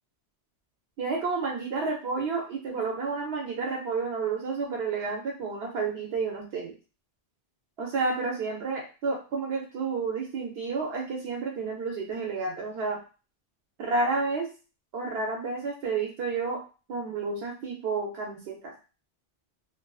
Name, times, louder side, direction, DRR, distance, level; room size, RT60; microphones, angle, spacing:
voice 1, 1.0-6.7 7.8-13.0 13.8-14.5 14.9-16.6 16.9-18.7, right 4 dB, 70° right, 0 dB, 0.8 m, -30 dB
2.5 x 2.4 x 2.3 m, 0.34 s
omnidirectional pair, 1.1 m